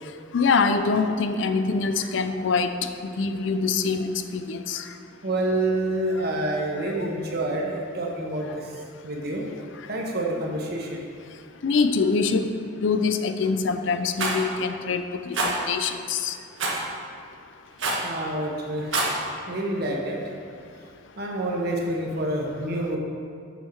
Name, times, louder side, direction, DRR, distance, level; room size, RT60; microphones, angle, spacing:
voice 1, 0.3-4.9 11.6-12.5 12.8-16.4, left 4 dB, 70° left, 9 dB, 0.4 m, -24 dB
voice 2, 5.2-8.7 9.0-9.4 9.9-11.0 18.0-18.9 19.5-20.2 21.2-23.0, right 1 dB, 55° right, -1 dB, 1.1 m, -27 dB
Rattle, 14.2-14.4 15.3-15.5 16.6-16.8 17.8-18.1 18.8-19.1, right 3 dB, 75° right, 1.3 m, -25 dB
7.2 x 5.6 x 4.5 m, 2.3 s
head